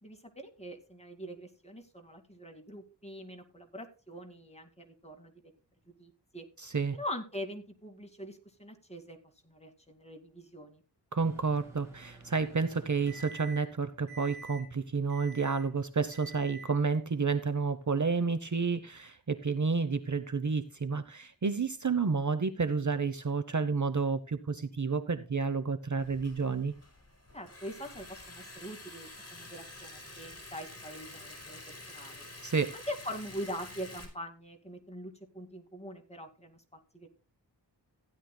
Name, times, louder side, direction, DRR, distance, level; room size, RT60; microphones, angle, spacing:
voice 1, 0.0-5.3 6.0-6.5 6.9-9.2 9.4-10.8 27.3-32.2 32.7-37.1, equal, 15° left, 2.1 m, -43 dB
voice 2, 6.6-7.0 11.1-26.7 32.4-32.7, right 4 dB, 45° right, 0.8 m, -30 dB
Microwave oven, 11.2-13.7 14.1-14.6 15.1-15.7 16.1-16.7, right 3 dB, 5° right, 6.8 m, -49 dB
Liquid, 26.0-34.1, left 2 dB, 35° left, 4.7 m, -48 dB
15.5 x 10.5 x 2.3 m
wide cardioid pair, 90°, 43 cm